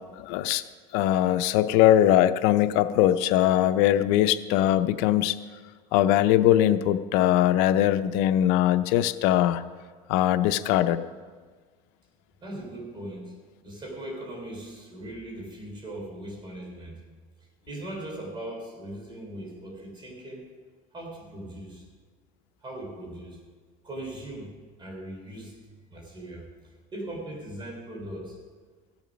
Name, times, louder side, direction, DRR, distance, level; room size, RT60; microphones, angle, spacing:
voice 1, 0.2-0.6 0.9-5.4 5.9-9.6 10.1-11.0, left 12 dB, 85° left, 11 dB, 0.6 m, -21 dB
voice 2, 12.4-13.3 13.6-17.0 17.7-20.5 20.9-21.8 22.6-23.4 23.8-25.6 25.9-28.4, right 1 dB, 30° right, -1 dB, 3.5 m, -39 dB
15.5 x 7.2 x 5.2 m, 1.5 s
cardioid pair, 115°, 16 cm